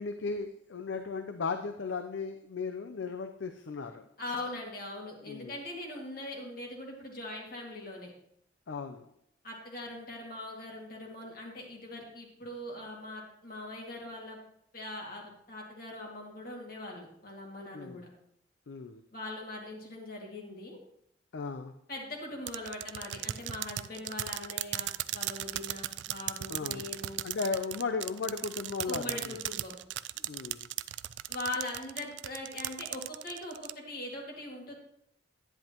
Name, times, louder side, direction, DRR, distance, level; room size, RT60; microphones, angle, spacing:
voice 1, 0.0-4.0 5.3-5.6 8.7-9.1 17.7-18.1 18.7-19.0 21.3-21.7 26.5-26.9 27.2-29.4 30.2-30.7, left 4 dB, 80° left, 7 dB, 0.5 m, -36 dB
voice 2, 4.2-8.1 9.4-14.4 14.7-18.1 19.1-20.8 21.9-27.2 28.9-29.7 31.3-34.8, left 2 dB, 50° left, -1 dB, 2.2 m, -41 dB
sound 1, 22.5-33.7, right 14 dB, 70° right, 0.3 m, -36 dB
10.5 x 10.0 x 3.0 m, 0.73 s
head